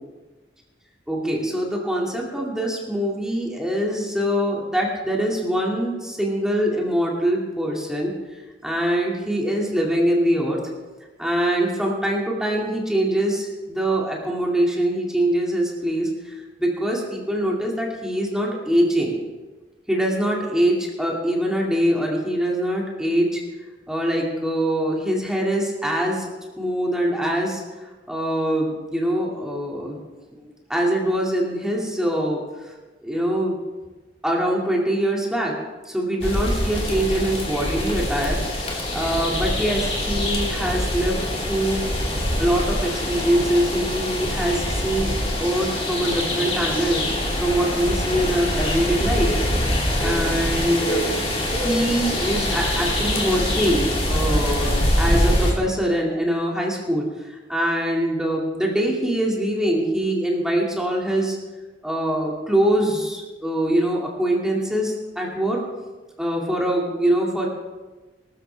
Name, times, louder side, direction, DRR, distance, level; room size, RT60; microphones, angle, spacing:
voice 1, 1.1-10.6 11.2-19.2 19.9-23.4 23.9-26.3 26.6-30.0 30.3-32.4 33.0-33.6 34.2-35.6 35.8-41.8 42.4-47.1 47.4-49.4 50.0-51.1 51.5-61.4 61.8-65.6 66.2-67.5, right 1 dB, 5° right, -2 dB, 2.3 m, -23 dB
sound 1, 36.2-55.5, left 1 dB, 35° left, 2.8 m, -24 dB
20.5 x 13.0 x 3.4 m, 1.2 s
head